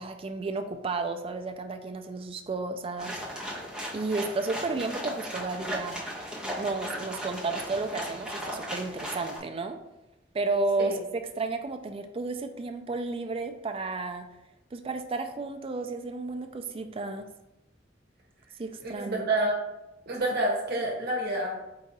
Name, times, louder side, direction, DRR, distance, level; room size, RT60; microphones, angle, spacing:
voice 1, 0.0-3.4 3.9-6.0 6.6-9.8 10.3-14.3 14.7-17.3 18.6-19.3, right 3 dB, 30° right, 7 dB, 0.4 m, -32 dB
sound 1, 3.0-9.4, equal, 5° right, 0.8 m, -36 dB
voice 2, 18.8-19.5 20.1-21.7, right 1 dB, 60° right, -2 dB, 0.8 m, -28 dB
4.7 x 2.4 x 4.1 m, 0.92 s
head